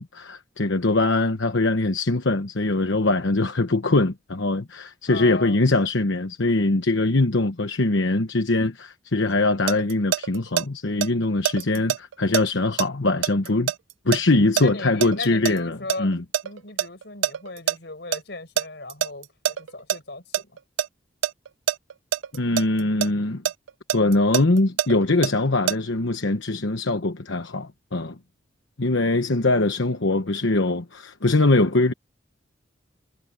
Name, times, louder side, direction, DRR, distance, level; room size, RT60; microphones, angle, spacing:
voice 1, 0.0-13.7 14.0-16.2 22.3-23.4 23.9-28.2 28.8-31.9, left 2 dB, 80° left, 1.1 m, -22 dB
voice 2, 5.1-5.6 14.5-16.1 16.4-20.6, left 2 dB, 60° left, 5.9 m, -37 dB
sound 1, 9.3-10.6 11.0-15.6 15.9-17.8 18.1-18.2 18.6-20.0 20.3-20.9 21.2-23.1 23.5-25.8, right 9 dB, 80° right, 0.4 m, -25 dB
head